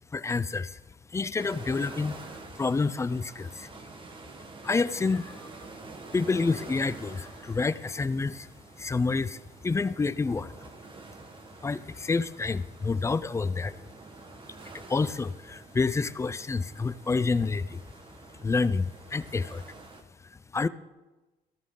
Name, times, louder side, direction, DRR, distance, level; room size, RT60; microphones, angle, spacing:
voice 1, 0.1-0.8 1.1-3.7 4.6-5.5 6.1-8.5 8.8-10.5 11.6-13.8 14.7-17.8 18.4-19.6 20.5-20.7, left 4 dB, 15° left, 17 dB, 0.4 m, -28 dB
sound 1, 1.4-20.0, right 3 dB, 30° right, 1.3 m, -48 dB
14.5 x 13.5 x 3.8 m, 1.1 s
cardioid pair, 110°, 17 cm